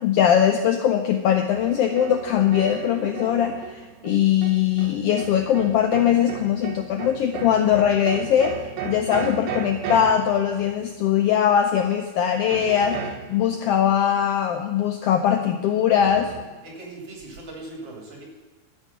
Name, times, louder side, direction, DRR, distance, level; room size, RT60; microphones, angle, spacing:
voice 1, 0.0-16.3, left 9 dB, 90° left, 6 dB, 1.3 m, -21 dB
sound 1, 1.5-11.1 12.5-13.8 16.0-16.4, right 7 dB, 80° right, 2.4 m, -35 dB
voice 2, 16.6-18.2, right 2 dB, 50° right, -1 dB, 3.7 m, -39 dB
12.0 x 8.1 x 5.9 m, 1.3 s
omnidirectional pair, 3.5 m